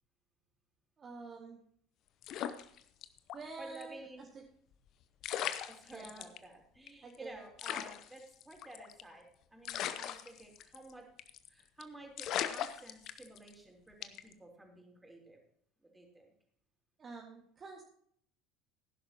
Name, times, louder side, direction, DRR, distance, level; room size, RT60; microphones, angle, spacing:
voice 1, 1.0-1.6 3.3-4.3 5.9-6.3 7.0-7.4 17.0-17.8, right 4 dB, 35° right, 0 dB, 1.9 m, -48 dB
sound 1, 2.2-3.4 3.7-3.8 4.9-5.0 5.2-6.4 6.9-7.0 7.1-7.2 7.6-9.1 9.6-10.9 11.2-11.5 11.8-11.9 12.2-13.5 14.0-14.3, left 10 dB, 50° left, 0.8 m, -38 dB
voice 2, 3.6-4.3 5.4-9.3 9.5-11.1 11.5-15.4 15.8-16.3, right 1 dB, 10° right, 1 dB, 3.8 m, -53 dB
17.0 x 10.5 x 2.9 m, 0.64 s
figure-of-eight pair, 65°, 0 cm